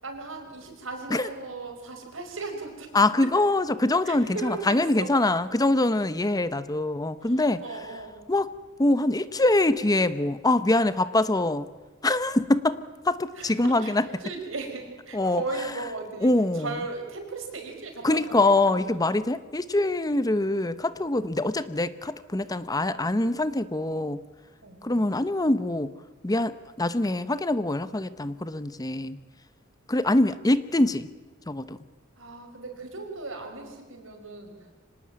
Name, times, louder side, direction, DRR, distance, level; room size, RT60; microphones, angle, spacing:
voice 1, 0.0-3.3 4.1-5.1 5.5-5.6 7.2-7.3 7.6-8.2 13.4-18.3 18.7-19.0 22.8-23.4 24.6-25.1 32.2-34.8, right 3 dB, 75° right, 3 dB, 5.5 m, -37 dB
voice 2, 2.9-7.6 8.3-8.5 8.8-11.7 12.0-14.0 15.1-15.4 16.2-16.8 18.0-24.2 24.8-25.9 26.2-29.2 29.9-31.1 31.5-31.8, left 2 dB, 20° left, 14 dB, 0.8 m, -24 dB
25.5 x 18.5 x 8.7 m, 1.2 s
head